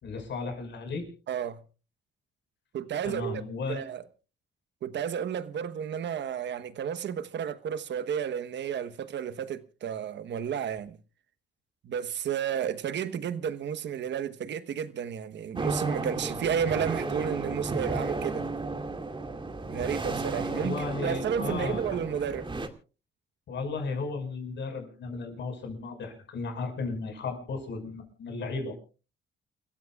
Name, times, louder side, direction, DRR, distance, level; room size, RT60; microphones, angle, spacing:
voice 1, 0.0-1.1 3.0-3.8 20.5-22.0 23.5-28.7, left 4 dB, 65° left, 5.8 m, -35 dB
voice 2, 1.3-1.6 2.7-3.4 3.7-4.0 4.8-11.0 11.8-18.5 19.7-22.5, right 8 dB, 65° right, 1.2 m, -32 dB
sound 1, 15.6-22.7, right 3 dB, 25° right, 2.1 m, -33 dB
29.0 x 15.0 x 2.4 m
cardioid pair, 90°, 20 cm